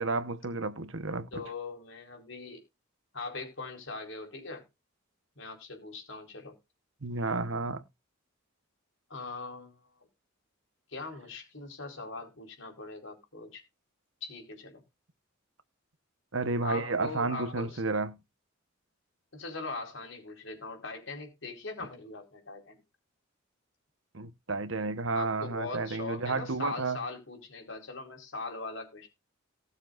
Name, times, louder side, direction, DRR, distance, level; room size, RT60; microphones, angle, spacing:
voice 1, 0.0-1.4 7.0-7.8 16.3-18.2 24.1-27.0, right 3 dB, 65° right, 1.2 m, -31 dB
voice 2, 1.3-2.6 3.1-4.6 5.4-6.6 9.1-9.8 10.9-13.6 14.2-14.8 16.6-17.8 19.3-22.8 25.1-29.1, left 3 dB, 65° left, 4.5 m, -41 dB
19.0 x 7.1 x 2.6 m
head